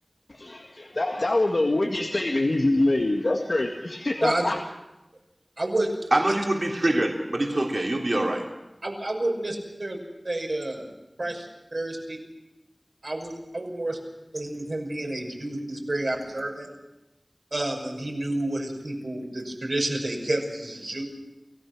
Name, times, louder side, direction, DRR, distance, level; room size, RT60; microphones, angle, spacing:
voice 1, 0.3-4.6, left 2 dB, 80° left, 1 dB, 1.8 m, -24 dB
voice 2, 5.6-5.9 6.3-6.4 8.8-10.0 10.2-10.9 11.2-12.2 13.0-14.0 14.3-16.7 17.5-21.0, right 1 dB, 75° right, 0 dB, 6.0 m, -30 dB
voice 3, 6.1-8.4, right 1 dB, 55° right, -1 dB, 3.4 m, -24 dB
29.0 x 16.0 x 6.1 m, 0.95 s
wide cardioid pair, 45°, 0 cm